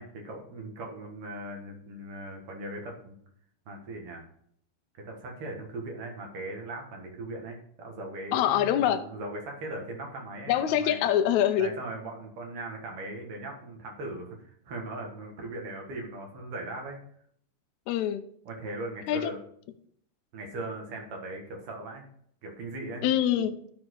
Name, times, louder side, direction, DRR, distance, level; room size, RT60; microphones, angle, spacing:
voice 1, 0.0-3.2 3.7-4.3 4.9-11.1 11.6-17.0 18.5-19.4 20.3-22.0 22.4-23.0, right 2 dB, 50° right, 1 dB, 2.2 m, -39 dB
voice 2, 8.3-9.1 10.5-11.7 17.9-18.2 19.1-19.3 23.0-23.6, left 10 dB, 75° left, 9 dB, 1.8 m, -24 dB
13.0 x 4.4 x 3.9 m, 0.65 s
omnidirectional pair, 3.8 m